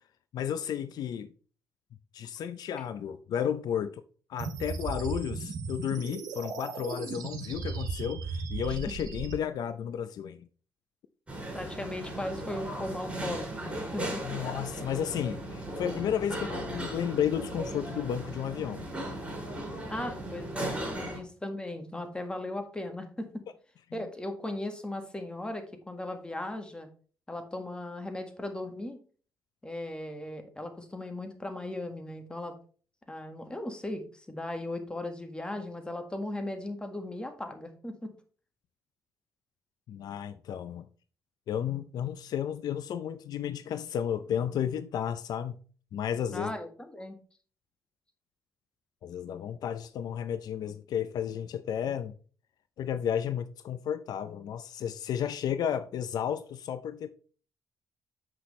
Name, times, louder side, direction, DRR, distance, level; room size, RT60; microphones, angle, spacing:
voice 1, 0.3-1.3 2.1-4.0 4.3-10.5 14.2-18.9 39.9-40.8 41.5-45.6 45.9-46.5 49.0-52.1 52.8-57.1, left 9 dB, 75° left, 0.5 m, -33 dB
sound 1, 4.4-9.3, right 4 dB, 75° right, 1.9 m, -36 dB
sound 2, 11.3-21.2, right 1 dB, 15° right, 4.1 m, -37 dB
voice 2, 11.5-14.4 19.9-23.4 23.9-26.9 27.3-29.0 29.6-32.5 33.1-38.1 46.3-47.2, left 1 dB, 15° left, 1.7 m, -37 dB
7.7 x 6.0 x 3.2 m
cardioid pair, 90°, 7 cm